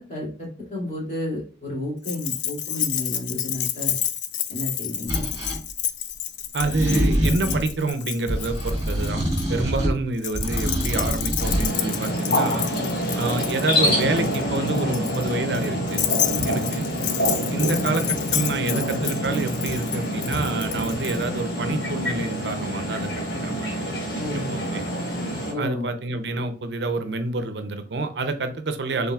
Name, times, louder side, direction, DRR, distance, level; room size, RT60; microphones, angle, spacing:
voice 1, 0.0-4.0 4.5-5.3 16.3-16.6 24.2-24.6 25.5-25.8, left 1 dB, 40° left, -6 dB, 2.5 m, -31 dB
Keys jangling, 2.0-9.5 10.2-21.2, left 11 dB, 75° left, 0.5 m, -30 dB
sound 1, 5.1-5.6 6.6-7.7 8.3-10.0 10.3-11.7, equal, 20° right, 2.1 m, -25 dB
voice 2, 6.5-12.7 13.2-16.1 16.5-16.9 17.5-23.1 23.4-23.9 24.5-24.8 25.6-29.1, right 3 dB, 70° right, 9 dB, 0.6 m, -28 dB
sound 2, 11.4-25.5, equal, 60° left, 1.5 m, -26 dB
5.7 x 3.9 x 2.3 m, 0.39 s
head